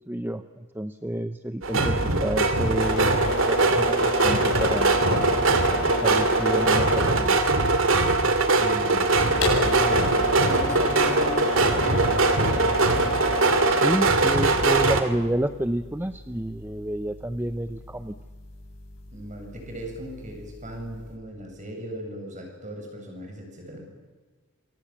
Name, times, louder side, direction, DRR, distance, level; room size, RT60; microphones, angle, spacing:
voice 1, 0.1-5.3 5.9-7.4 13.7-18.1, right 1 dB, 10° right, 10 dB, 0.7 m, -30 dB
sound 1, 1.6-15.0, right 3 dB, 60° right, 2.5 m, -21 dB
sound 2, 2.8-21.1, left 3 dB, 65° left, 7.8 m, -33 dB
voice 2, 8.6-9.3 9.6-12.2 19.1-23.8, equal, 35° right, 2 dB, 7.7 m, -37 dB
27.5 x 24.5 x 7.3 m, 1.4 s
head